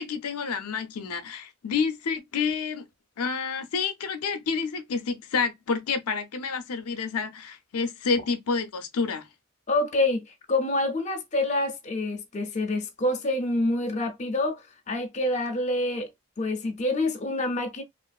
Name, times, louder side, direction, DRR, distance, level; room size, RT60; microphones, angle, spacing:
voice 1, 0.0-2.9 3.2-9.3, left 5 dB, 80° left, 0.5 m, -29 dB
voice 2, 9.7-16.1 16.4-17.8, left 2 dB, 30° left, 0.5 m, -27 dB
3.0 x 2.5 x 2.3 m
head